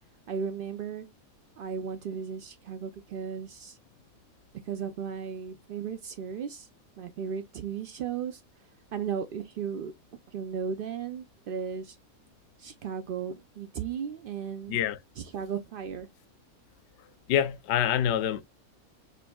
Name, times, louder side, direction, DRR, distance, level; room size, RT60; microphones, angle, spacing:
voice 1, 0.3-1.1 1.6-3.8 4.7-6.7 7.0-8.4 8.9-9.9 10.3-12.0 12.6-14.8 15.1-16.1, right 7 dB, 80° right, 0.5 m, -35 dB
voice 2, 17.3-18.4, left 10 dB, 65° left, 0.7 m, -26 dB
5.4 x 2.5 x 2.2 m
omnidirectional pair, 1.5 m